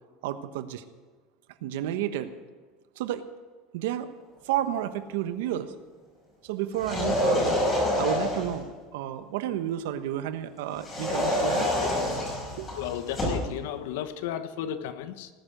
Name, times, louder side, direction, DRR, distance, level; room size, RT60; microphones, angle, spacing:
voice 1, 0.2-0.8 1.6-2.3 3.0-3.3 3.7-4.1 4.4-5.7 6.4-7.6 8.0-11.7 12.6-12.7, right 11 dB, 85° right, 10 dB, 1.2 m, -31 dB
sound 1, 6.7-8.6 10.8-13.5, left 1 dB, 20° left, 5.3 m, -27 dB
voice 2, 12.8-15.3, left 10 dB, 80° left, 11 dB, 1.2 m, -34 dB
19.0 x 10.0 x 6.5 m, 1.4 s
cardioid pair, 180°, 0 cm